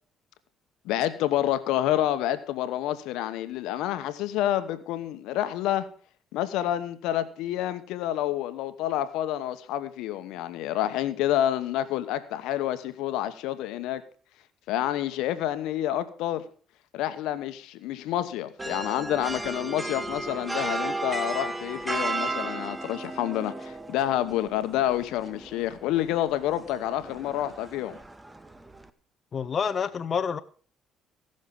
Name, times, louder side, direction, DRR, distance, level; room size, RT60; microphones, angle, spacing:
voice 1, 0.8-5.9 6.3-14.0 14.7-16.4 16.9-28.0, left 12 dB, 85° left, 0.9 m, -28 dB
sound 1, 18.6-28.9, right 2 dB, 15° right, 0.8 m, -35 dB
voice 2, 29.3-30.4, left 6 dB, 45° left, 0.6 m, -28 dB
16.0 x 6.4 x 5.4 m
cardioid pair, 85°, 0 cm